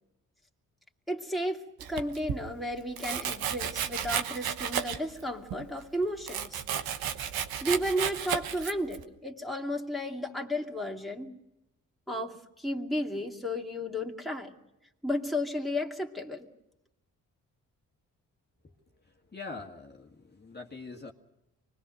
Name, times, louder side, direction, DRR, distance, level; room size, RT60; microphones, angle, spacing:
voice 1, 1.1-1.6 1.9-6.6 7.6-11.4 12.1-14.5 15.0-16.5, equal, ahead, 0 dB, 2.4 m, -33 dB
Domestic sounds home sounds, 1.8-2.4 3.0-5.2 5.5-9.0, right 9 dB, 85° right, 1.2 m, -33 dB
voice 2, 19.3-21.1, left 3 dB, 30° left, 0 dB, 1.9 m, -43 dB
24.5 x 20.0 x 6.5 m, 0.90 s
supercardioid pair, 55°, 36 cm